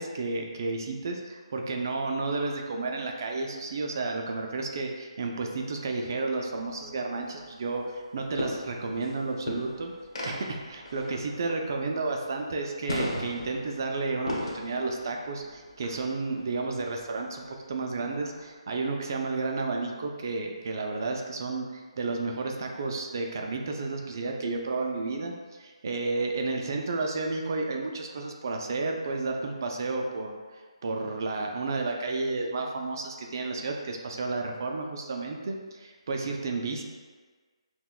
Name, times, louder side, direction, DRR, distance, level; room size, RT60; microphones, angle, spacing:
voice 1, 0.0-9.9 10.3-25.3 25.6-30.3 30.8-36.8, right 3 dB, 35° right, 2 dB, 0.3 m, -32 dB
sound 1, 6.5-18.5, left 1 dB, 75° left, 1.1 m, -39 dB
5.7 x 2.1 x 2.3 m, 1.5 s
hypercardioid pair, 170°, 3 cm